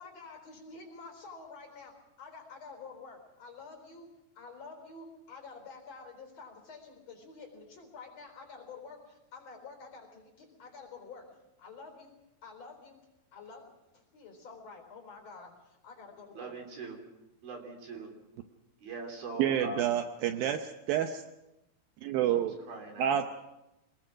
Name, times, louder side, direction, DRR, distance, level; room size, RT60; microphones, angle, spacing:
voice 1, 0.0-16.5, left 4 dB, 35° left, 3 dB, 4.7 m, -49 dB
voice 2, 16.3-17.0 17.4-18.1 18.8-19.9 22.3-23.4, right 3 dB, 55° right, 2 dB, 4.7 m, -42 dB
voice 3, 19.4-21.2 22.0-22.6 23.0-23.3, right 10 dB, 85° right, 7 dB, 2.0 m, -28 dB
25.5 x 20.5 x 6.2 m, 0.95 s
omnidirectional pair, 5.4 m